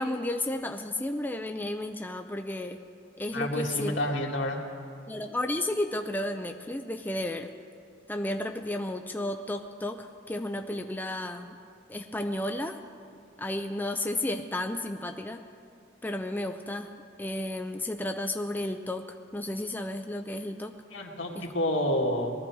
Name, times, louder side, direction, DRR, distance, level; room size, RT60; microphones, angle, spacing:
voice 1, 0.0-2.8 3.2-3.9 5.1-7.5 8.1-11.5 11.9-12.8 13.4-15.5 16.0-16.9 17.2-20.7 21.4-21.5, left 1 dB, 10° left, 5 dB, 0.5 m, -32 dB
voice 2, 3.3-4.6 20.9-22.3, left 1 dB, 70° left, 0 dB, 2.0 m, -29 dB
20.0 x 13.5 x 4.8 m, 2.3 s
head